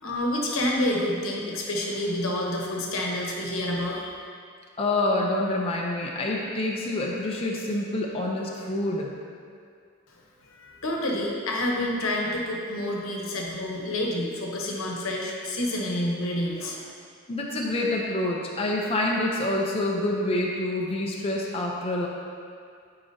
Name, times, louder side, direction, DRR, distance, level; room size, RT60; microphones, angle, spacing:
voice 1, 0.0-4.1 10.4-16.9, left 1 dB, 90° left, -1 dB, 1.0 m, -28 dB
voice 2, 4.8-9.1 17.3-22.1, left 1 dB, 30° left, -2 dB, 0.5 m, -27 dB
9.7 x 4.8 x 2.7 m, 2.3 s
head